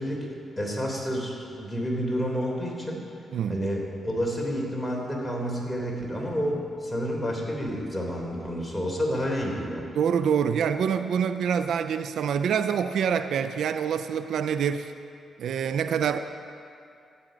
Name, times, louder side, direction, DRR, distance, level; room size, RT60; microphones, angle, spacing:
voice 1, 0.0-3.0 3.5-9.8, equal, 5° left, -1 dB, 3.4 m, -29 dB
voice 2, 9.9-14.9 15.4-16.2, right 7 dB, 75° right, 10 dB, 0.4 m, -26 dB
15.0 x 8.8 x 5.1 m, 2.5 s
supercardioid pair, 60°, 0 cm